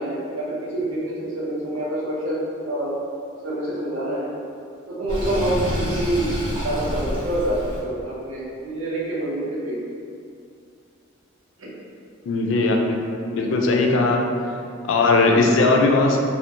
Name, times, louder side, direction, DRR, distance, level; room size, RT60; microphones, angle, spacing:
voice 1, 0.0-3.0 3.4-4.3 4.9-6.3 6.6-9.8 11.6-11.7, right 1 dB, 90° right, -5 dB, 0.6 m, -27 dB
Sink (filling or washing), 5.1-7.8, equal, 30° right, 0.6 m, -27 dB
voice 2, 12.3-13.0 13.3-14.2 14.9-16.2, left 3 dB, 70° left, 2 dB, 0.3 m, -18 dB
2.4 x 2.1 x 2.7 m, 2.4 s
head